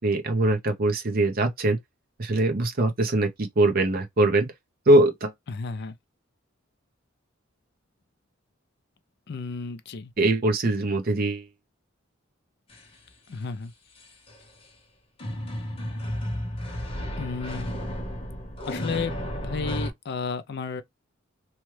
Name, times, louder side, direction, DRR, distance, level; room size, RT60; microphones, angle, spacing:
voice 1, 0.0-1.8 2.2-4.5 4.9-5.3 10.2-11.4, right 2 dB, 45° right, 0.7 m, -22 dB
voice 2, 5.5-5.9 9.3-10.1 13.3-13.7 17.2-17.7 18.7-19.1 19.4-20.8, left 4 dB, 55° left, 0.5 m, -32 dB
sound 1, 12.7-12.8 14.0-14.4 15.2-19.9, equal, 30° left, 0.9 m, -32 dB
3.0 x 2.2 x 3.1 m
head